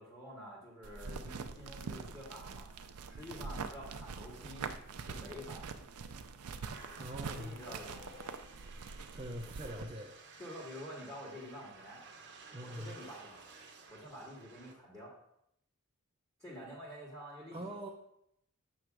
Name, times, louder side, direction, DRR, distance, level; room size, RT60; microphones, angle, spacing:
voice 1, 0.0-2.7 3.1-4.7 5.0-5.8 7.1-8.2 10.4-12.0 12.6-13.4 13.9-15.1 16.4-17.6, equal, 15° left, -8 dB, 1.8 m, -48 dB
sound 1, 0.8-9.8, right 5 dB, 80° right, 0.5 m, -44 dB
sound 2, 5.8-9.0, left 3 dB, 65° left, 0.9 m, -60 dB
sound 3, 6.7-14.7, right 4 dB, 50° right, 0.9 m, -55 dB
voice 2, 7.0-7.6 9.1-10.2 12.5-12.9 17.5-17.9, right 1 dB, 25° right, -2 dB, 0.6 m, -43 dB
7.8 x 3.2 x 6.1 m, 0.75 s
head